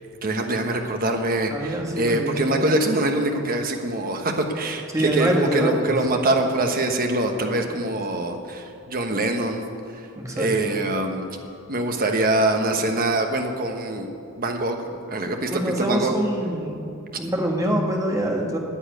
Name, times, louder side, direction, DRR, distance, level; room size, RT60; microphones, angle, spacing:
voice 1, 0.2-9.6 10.3-11.3 11.7-14.1 14.4-16.1, right 2 dB, 40° right, 4 dB, 1.1 m, -24 dB
voice 2, 1.5-2.7 4.9-6.0 10.1-10.8 15.5-16.8 17.1-18.6, right 1 dB, 15° right, 0 dB, 1.5 m, -25 dB
9.9 x 8.9 x 9.1 m, 2.5 s
head